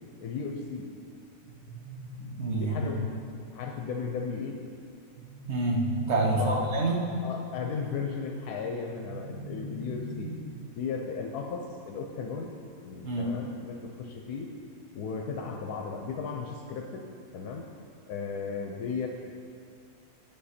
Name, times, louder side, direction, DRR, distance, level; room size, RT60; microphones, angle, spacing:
voice 1, 0.2-0.9 2.6-3.0 3.5-4.6 6.2-6.7 7.2-10.3 10.8-14.6 14.9-17.1 17.3-17.7 18.1-19.1, left 5 dB, 85° left, 1 dB, 1.2 m, -35 dB
sound 1, 1.4-3.4 5.1-7.1 8.8-10.8, right 2 dB, 70° right, 1.4 m, -40 dB
voice 2, 2.2-3.0 5.5-7.0 13.0-13.3, right 2 dB, 50° right, -1 dB, 1.3 m, -28 dB
9.0 x 7.7 x 4.2 m, 2.4 s
omnidirectional pair, 1.6 m